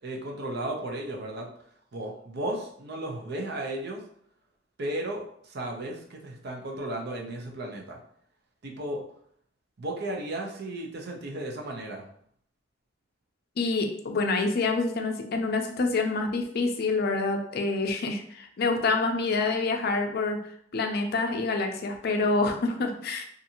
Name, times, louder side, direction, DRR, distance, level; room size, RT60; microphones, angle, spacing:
voice 1, 0.0-1.5 1.9-4.0 4.8-8.0 8.6-9.0 9.8-12.0, right 1 dB, 60° right, 1 dB, 0.6 m, -34 dB
voice 2, 13.6-20.4 20.7-23.2, left 3 dB, 55° left, 4 dB, 0.4 m, -27 dB
2.6 x 2.5 x 2.8 m, 0.65 s
head